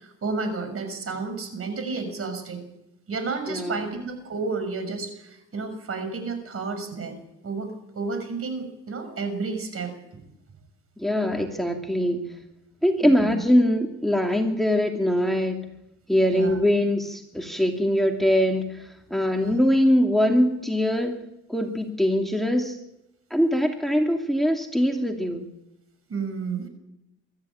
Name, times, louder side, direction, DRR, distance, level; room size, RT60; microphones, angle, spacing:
voice 1, 0.0-2.6 3.1-7.1 7.4-10.2 13.0-13.4 16.3-16.6 19.4-19.5 26.1-26.7, right 4 dB, 50° right, 8 dB, 6.4 m, -31 dB
voice 2, 3.5-3.9 11.0-12.3 12.8-15.6 16.1-21.2 21.5-22.8 23.3-25.5, equal, ahead, 3 dB, 2.6 m, -22 dB
23.5 x 14.0 x 8.9 m, 0.89 s
cardioid pair, 90°, 30 cm